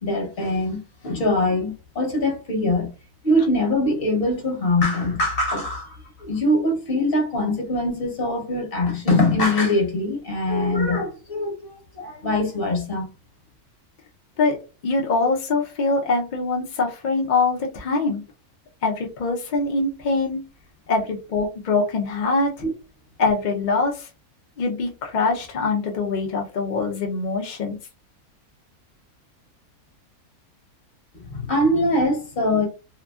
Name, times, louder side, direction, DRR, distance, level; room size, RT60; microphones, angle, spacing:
voice 1, 0.0-2.9 3.2-13.1 22.6-22.7 31.3-32.7, left 1 dB, 45° left, 1.0 m, -23 dB
voice 2, 14.8-18.2 18.8-20.4 20.9-22.5 23.2-24.1 24.6-27.8, left 3 dB, 70° left, 0.4 m, -23 dB
2.7 x 2.5 x 2.3 m
omnidirectional pair, 1.6 m